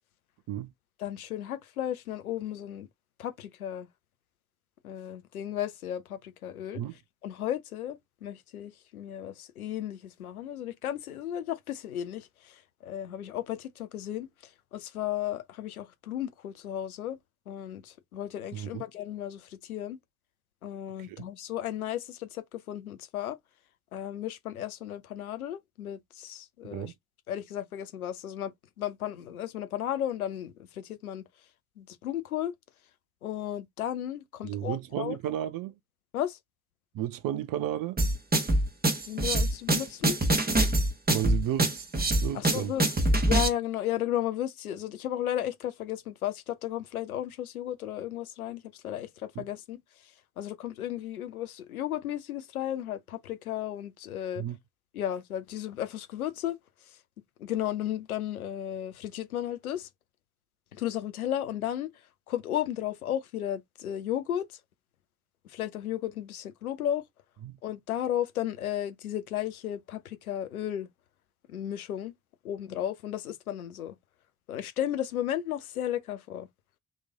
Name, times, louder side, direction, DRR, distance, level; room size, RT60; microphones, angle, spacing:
voice 1, 1.0-2.9 3.2-3.9 4.8-6.8 7.2-14.3 14.7-17.2 17.5-20.0 20.6-23.4 23.9-26.9 27.3-28.5 28.8-31.2 31.8-32.5 33.2-35.2 36.1-36.4 39.1-40.2 42.3-42.8 43.3-49.8 50.4-54.4 54.9-56.6 57.4-59.9 60.7-61.9 62.3-64.6 65.4-67.0 67.6-70.9 71.5-72.1 72.4-73.9 74.5-76.5, left 11 dB, 85° left, 0.7 m, -34 dB
voice 2, 18.5-18.8 21.0-21.3 26.7-26.9 34.4-35.7 36.9-38.0 41.1-41.9 42.2-42.7 49.4-49.5 54.4-54.6 67.4-67.6, right 11 dB, 50° right, 0.8 m, -33 dB
sound 1, 38.0-43.5, right 1 dB, 20° right, 1.6 m, -24 dB
3.9 x 3.2 x 3.6 m
figure-of-eight pair, 50°, 42 cm